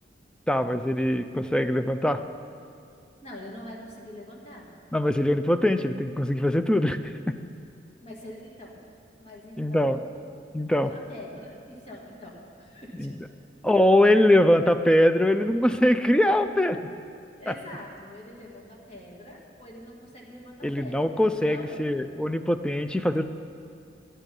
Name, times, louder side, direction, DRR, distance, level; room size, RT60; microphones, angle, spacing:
voice 1, 0.5-2.2 4.9-7.0 7.3-7.4 9.6-10.0 10.5-10.9 12.9-13.2 13.6-16.8 20.6-23.2, left 1 dB, 5° left, 8 dB, 0.3 m, -22 dB
voice 2, 3.2-4.7 8.0-8.9 9.2-10.1 10.7-13.2 17.4-21.9, left 1 dB, 35° left, -3 dB, 2.0 m, -44 dB
12.0 x 10.0 x 5.3 m, 2.4 s
head